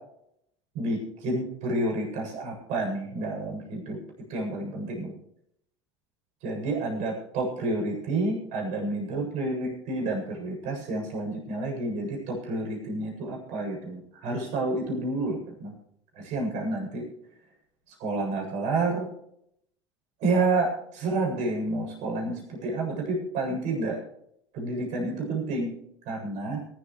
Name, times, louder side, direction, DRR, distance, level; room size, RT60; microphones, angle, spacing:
voice 1, 0.7-4.0 4.3-5.1 6.4-15.7 16.1-17.0 18.0-19.1 20.2-24.0 24.5-25.7 26.1-26.6, right 2 dB, 55° right, 0 dB, 7.9 m, -29 dB
22.5 x 13.5 x 3.2 m, 0.74 s
hypercardioid pair, 80°, 14 cm